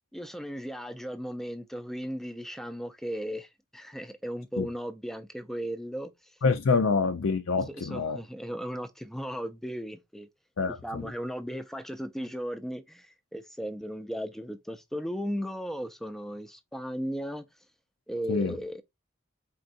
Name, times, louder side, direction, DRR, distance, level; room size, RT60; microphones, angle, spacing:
voice 1, 0.1-6.3 7.7-10.3 10.7-17.4 18.1-18.8, equal, ahead, 0.5 m, -36 dB
voice 2, 6.4-8.2 10.6-11.1 18.3-18.6, left 4 dB, 75° left, 0.5 m, -26 dB
4.4 x 3.9 x 2.5 m
head